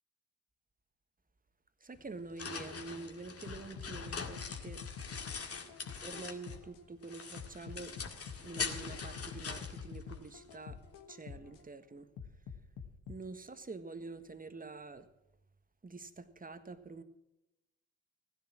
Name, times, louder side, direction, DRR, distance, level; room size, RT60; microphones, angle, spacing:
voice 1, 1.8-4.8 6.0-7.9 8.4-10.8 11.1-12.1 13.1-15.0 15.8-17.0, right 3 dB, 25° right, 1.6 m, -47 dB
sound 1, 2.0-6.7 7.0-10.6, left 5 dB, 40° left, 2.0 m, -43 dB
sound 2, 3.5-6.8 7.4-11.6 12.2-13.2, left 6 dB, 65° left, 1.5 m, -47 dB
16.0 x 11.0 x 6.1 m
hypercardioid pair, 45°, 36 cm